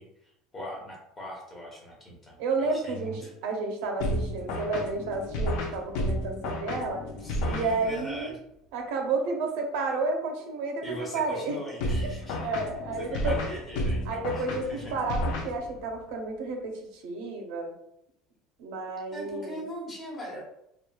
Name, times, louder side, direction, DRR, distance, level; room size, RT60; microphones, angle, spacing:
voice 1, 0.0-3.3 7.2-8.3 10.8-12.5 13.0-14.9 19.1-20.4, equal, 20° left, -3 dB, 0.7 m, -40 dB
voice 2, 2.4-7.0 7.4-8.3 8.7-11.6 12.4-13.4 14.1-17.7 18.6-19.6, right 3 dB, 75° right, 3 dB, 0.5 m, -31 dB
sound 1, 4.0-8.2 11.8-16.0, equal, 65° left, 0.4 m, -32 dB
2.9 x 2.2 x 2.2 m, 0.78 s
cardioid pair, 180°, 0 cm